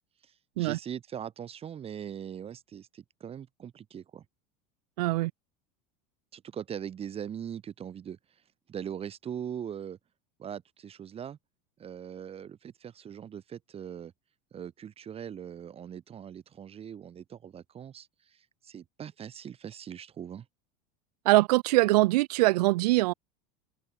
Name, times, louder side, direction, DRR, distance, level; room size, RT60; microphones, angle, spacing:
voice 1, 0.2-4.2 6.3-8.2 8.7-10.0 10.4-11.4 11.8-14.1 14.5-20.5, right 8 dB, 30° right, 2.1 m, -41 dB
voice 2, 5.0-5.3 21.2-23.1, right 19 dB, 80° right, 1.4 m, -23 dB
supercardioid pair, 120°, 20 cm